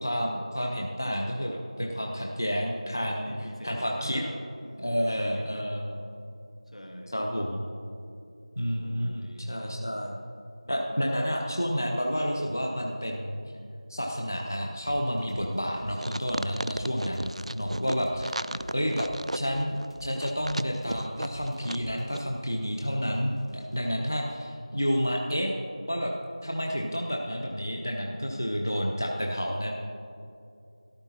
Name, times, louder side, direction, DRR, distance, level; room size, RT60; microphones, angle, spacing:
voice 1, 0.0-3.3 3.6-4.2 4.8-6.0 7.1-7.7 8.6-10.2 10.7-13.4 13.9-18.4 18.7-19.1 19.3-25.5 25.9-26.1 26.4-29.7, equal, 30° left, 0 dB, 0.5 m, -30 dB
voice 2, 3.2-5.7 6.7-7.2 8.8-9.6 10.6-11.1 18.3-18.8, equal, 75° left, 2 dB, 1.5 m, -44 dB
sound 1, 14.8-24.5, equal, 55° left, 1.1 m, -49 dB
sound 2, 16.0-21.9 22.1-22.2, right 1 dB, 70° right, 0.3 m, -35 dB
13.5 x 11.5 x 2.8 m, 2.6 s
figure-of-eight pair, 180°, 4 cm